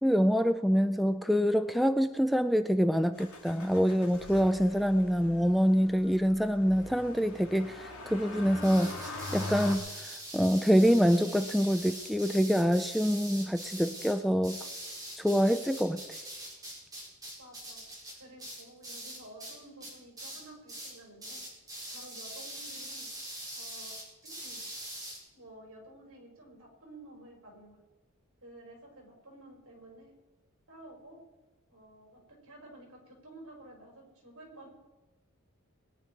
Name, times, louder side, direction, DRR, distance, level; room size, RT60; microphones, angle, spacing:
voice 1, 0.0-14.6 15.2-16.0, equal, ahead, 9 dB, 0.4 m, -26 dB
Motor vehicle (road), 3.2-9.8, left 2 dB, 80° left, 2.7 m, -43 dB
sound 1, 8.6-19.5 19.8-20.4 20.7-20.9 21.2-25.2, right 1 dB, 15° right, 4.7 m, -43 dB
voice 2, 17.4-17.8 18.2-21.4 21.9-23.1 23.5-23.9 24.2-24.7 25.3-27.8 28.4-30.1 30.7-31.2 31.7-34.7, right 1 dB, 65° right, 0 dB, 5.3 m, -52 dB
21.0 x 10.0 x 4.6 m, 1.2 s
head